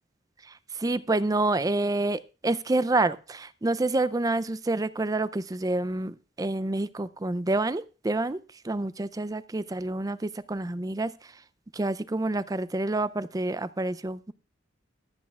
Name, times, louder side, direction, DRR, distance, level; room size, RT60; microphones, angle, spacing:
voice 1, 0.7-8.4 8.6-11.1 11.7-14.3, right 2 dB, 20° right, 0.4 m, -28 dB
23.5 x 8.5 x 2.4 m
head